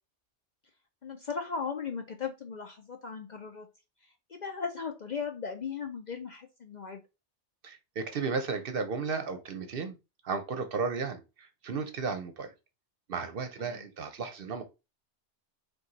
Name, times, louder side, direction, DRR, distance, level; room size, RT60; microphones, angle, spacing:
voice 1, 1.0-3.7 4.0-7.0 13.6-13.8, left 6 dB, 50° left, 0.5 m, -37 dB
voice 2, 7.6-10.0 10.2-12.5 13.1-14.6, right 5 dB, 60° right, 0.8 m, -34 dB
4.6 x 2.3 x 3.9 m
omnidirectional pair, 1.2 m